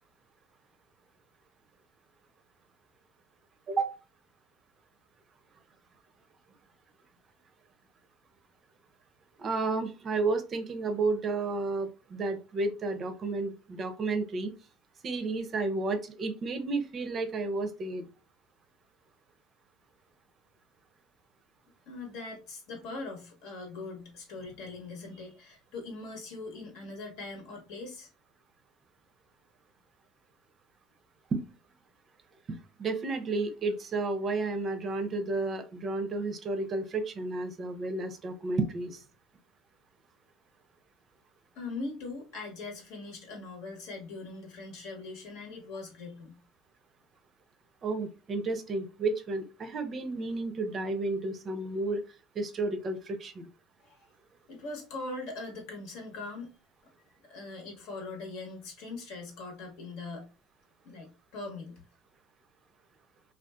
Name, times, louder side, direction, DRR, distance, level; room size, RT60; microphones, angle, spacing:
voice 1, 9.4-14.5 15.0-18.0 31.3-31.4 32.8-39.0 47.8-52.0 52.4-53.5, right 3 dB, 35° right, 8 dB, 0.5 m, -32 dB
voice 2, 21.9-28.1 41.5-46.4 53.8-54.1 54.5-56.5 57.1-60.3 60.8-61.8, left 3 dB, 75° left, 2 dB, 1.1 m, -41 dB
2.5 x 2.3 x 2.2 m, 0.32 s
supercardioid pair, 105°, 0 cm